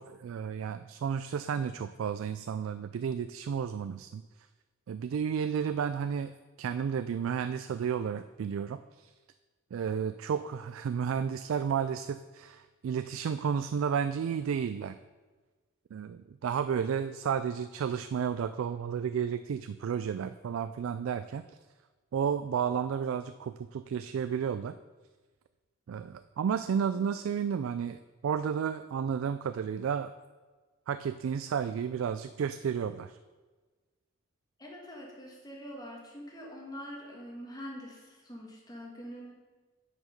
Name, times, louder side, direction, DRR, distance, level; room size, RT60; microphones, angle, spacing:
voice 1, 0.0-4.2 4.9-6.3 6.6-9.1 9.7-15.0 15.9-21.4 22.1-24.7 25.9-30.1 30.9-33.2, right 7 dB, 80° right, 11 dB, 0.3 m, -32 dB
voice 2, 34.6-39.3, equal, 20° left, -1 dB, 1.5 m, -44 dB
9.6 x 5.0 x 5.1 m, 1.3 s
head